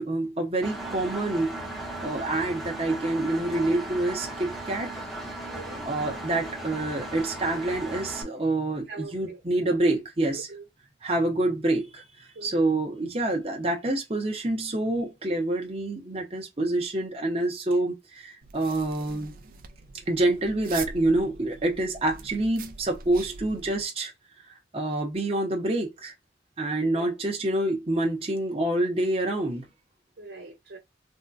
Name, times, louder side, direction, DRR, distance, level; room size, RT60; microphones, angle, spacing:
voice 1, 0.0-1.6 2.0-5.0 5.8-10.5 11.0-19.3 20.1-24.1 24.7-26.1 26.6-29.7, right 2 dB, 30° right, 0.8 m, -27 dB
Engine, 0.6-8.2, right 1 dB, ahead, 0.7 m, -37 dB
voice 2, 5.5-5.9 8.9-9.4 10.3-10.7 12.3-12.7 26.9-27.1 30.2-30.8, right 3 dB, 75° right, 1.0 m, -42 dB
sound 1, 18.4-23.8, right 5 dB, 50° right, 0.5 m, -43 dB
3.6 x 2.2 x 2.5 m
head